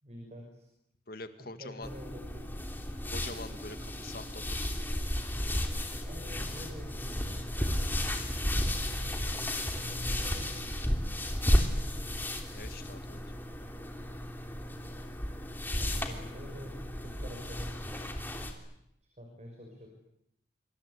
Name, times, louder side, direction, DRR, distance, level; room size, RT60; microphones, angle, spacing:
voice 1, 0.0-0.7 1.4-2.5 5.8-7.9 8.4-10.9 15.8-17.7 19.2-19.9, equal, 40° right, 2 dB, 6.2 m, -47 dB
voice 2, 1.1-1.9 3.0-4.4 12.5-13.2, left 2 dB, 55° left, 9 dB, 2.1 m, -44 dB
sound 1, 1.8-18.5, left 1 dB, 10° left, 3.2 m, -33 dB
26.5 x 26.0 x 8.5 m, 0.78 s
head